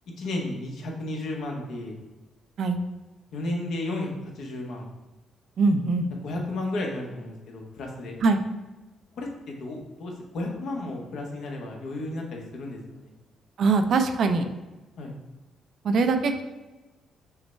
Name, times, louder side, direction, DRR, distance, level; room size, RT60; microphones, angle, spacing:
voice 1, 0.2-2.0 3.3-4.9 6.2-8.1 9.2-12.8 15.0-15.1, left 2 dB, 70° left, 0 dB, 1.0 m, -33 dB
voice 2, 5.6-6.1 8.2-8.4 13.6-14.4 15.8-16.4, right 4 dB, 65° right, 7 dB, 0.4 m, -22 dB
5.6 x 2.2 x 4.3 m, 1.1 s
cardioid pair, 90°, 0 cm